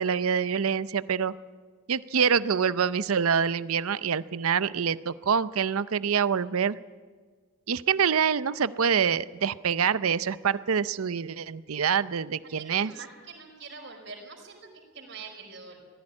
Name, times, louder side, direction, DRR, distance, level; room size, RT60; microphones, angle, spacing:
voice 1, 0.0-1.3 1.9-6.8 7.7-12.9, right 7 dB, 85° right, 16 dB, 0.6 m, -26 dB
voice 2, 12.6-15.8, right 4 dB, 55° right, 1 dB, 5.1 m, -44 dB
18.0 x 15.5 x 9.8 m, 1.5 s
head